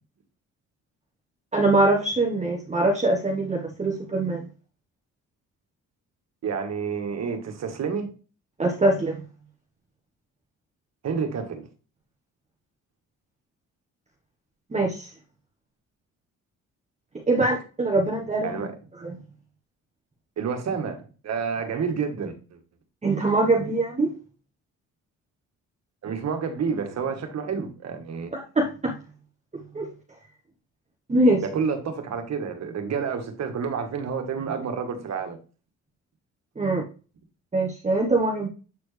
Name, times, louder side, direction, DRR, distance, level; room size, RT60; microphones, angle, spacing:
voice 1, 1.5-4.5 8.6-9.2 14.7-15.1 17.3-18.7 19.0-19.1 23.0-24.1 28.3-28.9 29.7-29.9 31.1-31.4 36.6-36.9 37.5-38.5, right 2 dB, 25° right, 1.3 m, -23 dB
voice 2, 6.4-8.1 11.0-11.6 17.4-17.5 18.4-18.7 20.4-22.6 26.0-28.3 31.4-35.4, right 6 dB, 60° right, 1.7 m, -29 dB
8.2 x 4.4 x 3.4 m
cardioid pair, 90°, 30 cm